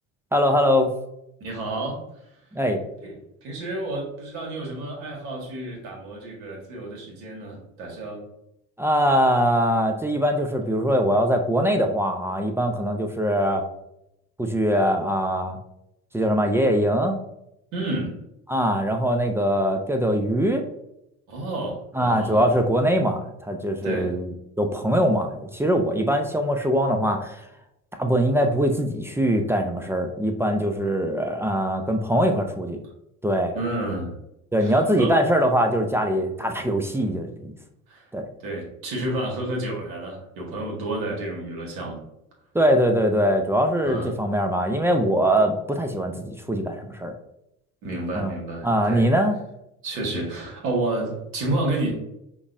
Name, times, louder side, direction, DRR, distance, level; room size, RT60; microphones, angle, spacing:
voice 1, 0.3-0.9 2.5-2.8 8.8-13.6 14.4-15.6 16.1-17.1 18.5-20.6 22.0-24.3 24.6-27.4 28.0-32.8 33.2-33.5 34.5-37.5 38.1-38.3 42.5-47.1 48.1-48.3 48.6-49.4, equal, 5° right, 4 dB, 0.3 m, -22 dB
voice 2, 1.4-2.3 3.0-3.1 3.4-8.2 17.7-18.2 21.3-22.5 23.8-24.1 33.5-34.2 34.6-35.2 37.9-38.1 38.4-42.0 43.8-44.2 47.8-49.1 49.8-51.9, right 2 dB, 65° right, 0 dB, 1.5 m, -30 dB
5.2 x 2.3 x 2.5 m, 0.81 s
hypercardioid pair, 70°, 41 cm